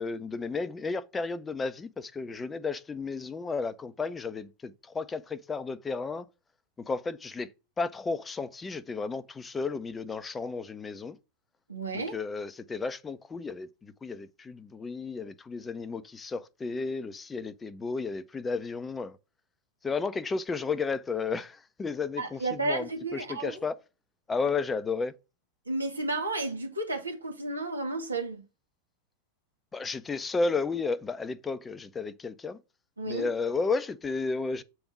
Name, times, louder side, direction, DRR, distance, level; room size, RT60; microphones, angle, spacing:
voice 1, 0.0-6.3 6.8-7.5 7.8-11.2 11.9-19.2 19.8-23.8 24.3-25.1 29.7-32.6 33.1-34.6, left 4 dB, 15° left, 0.6 m, -33 dB
voice 2, 11.7-12.2 22.2-23.6 25.6-28.4 33.0-33.3, right 2 dB, 80° right, 1.7 m, -32 dB
7.8 x 3.5 x 5.9 m
figure-of-eight pair, 90°, 0 cm